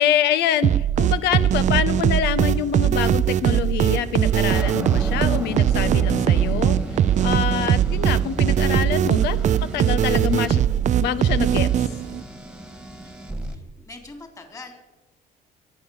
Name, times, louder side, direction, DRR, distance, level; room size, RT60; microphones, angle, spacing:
voice 1, 0.0-10.6 11.0-11.9, left 9 dB, 80° left, 14 dB, 1.1 m, -25 dB
sound 1, 0.6-12.2, right 10 dB, 45° right, 0.5 m, -20 dB
sound 2, 4.2-13.6, right 1 dB, 5° right, 1.8 m, -34 dB
voice 2, 13.0-14.7, left 3 dB, 20° left, 4 dB, 3.5 m, -43 dB
22.5 x 8.8 x 7.2 m, 1.1 s
cardioid pair, 110°, 17 cm